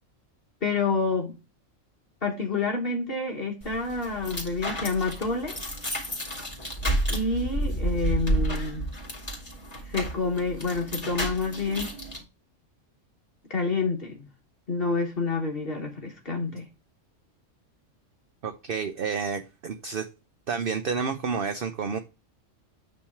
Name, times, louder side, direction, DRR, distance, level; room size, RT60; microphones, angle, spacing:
voice 1, 0.6-1.3 2.2-5.6 7.1-8.9 9.8-11.9 13.5-14.3 14.7-16.7, left 3 dB, 50° left, 1.5 m, -28 dB
sound 1, 3.6-12.2, right 1 dB, 30° left, 2.3 m, -31 dB
voice 2, 18.4-20.1 20.5-22.0, right 6 dB, 50° right, 0.8 m, -30 dB
8.8 x 3.2 x 5.8 m
omnidirectional pair, 1.3 m